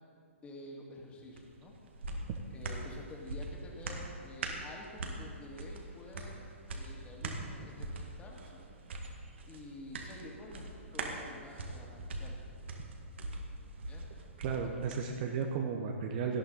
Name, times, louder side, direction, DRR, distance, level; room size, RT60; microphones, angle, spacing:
voice 1, 0.4-1.7 2.5-6.4 6.7-8.6 9.5-12.4 13.9-14.0, left 2 dB, 15° left, -1 dB, 2.4 m, -49 dB
sound 1, 1.3-15.0 15.4-15.5, right 2 dB, 60° right, 1.8 m, -42 dB
voice 2, 14.4-16.4, right 6 dB, 40° right, 3 dB, 1.0 m, -34 dB
18.0 x 12.0 x 4.1 m, 2.4 s
figure-of-eight pair, 120°, 7 cm